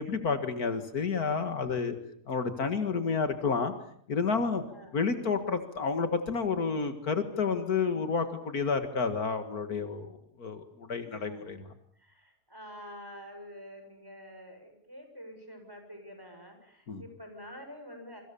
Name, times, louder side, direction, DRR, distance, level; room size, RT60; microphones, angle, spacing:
voice 1, 0.0-2.0 2.3-3.7 4.1-4.6 4.9-11.7 16.9-17.0, left 5 dB, 70° left, 8 dB, 2.3 m, -30 dB
voice 2, 11.1-11.5 12.0-18.2, equal, 15° right, 5 dB, 6.9 m, -47 dB
28.0 x 25.0 x 7.0 m, 0.65 s
omnidirectional pair, 1.7 m